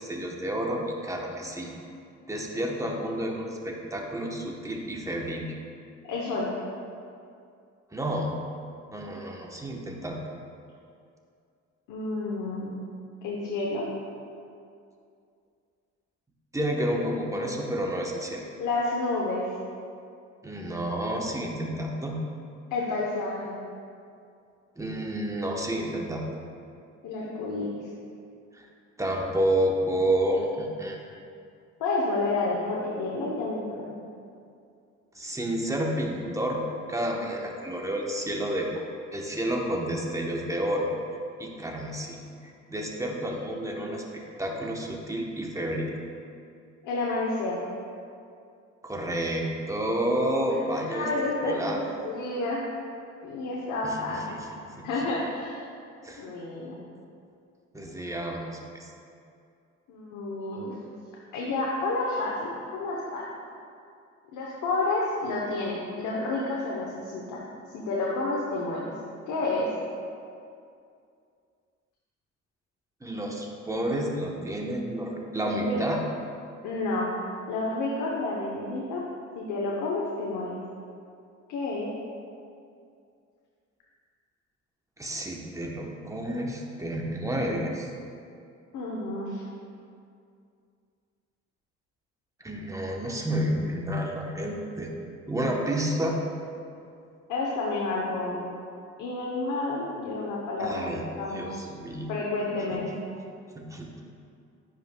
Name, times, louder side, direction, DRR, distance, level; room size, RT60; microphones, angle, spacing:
voice 1, 0.0-1.7 2.3-5.5 7.9-8.3 8.9-10.2 16.5-18.4 20.4-22.2 24.8-26.3 28.5-28.7 29.0-31.0 35.2-36.6 36.9-38.7 39.1-40.9 41.4-45.9 48.8-52.0 53.8-54.9 56.0-56.2 57.7-58.9 73.0-76.0 85.0-87.9 92.4-94.9 95.3-96.2 100.6-101.0 101.3-102.1 102.7-102.8 103.6-104.0, right 1 dB, 10° right, 0 dB, 0.9 m, -30 dB
voice 2, 6.0-6.5 11.9-12.8 13.2-13.8 18.6-19.5 22.7-23.6 27.0-27.8 31.8-34.0 46.8-47.6 50.9-52.7 53.2-54.4 54.8-55.6 56.2-56.8 59.9-60.8 61.3-63.2 64.3-67.4 67.7-68.9 69.3-69.7 75.4-75.8 76.6-77.1 77.5-79.0 79.3-80.6 81.5-81.9 88.7-89.4 97.3-98.4 99.0-101.7 102.1-102.9, left 2 dB, 85° left, -4 dB, 0.9 m, -30 dB
10.5 x 5.2 x 2.2 m, 2.4 s
cardioid pair, 90°, 30 cm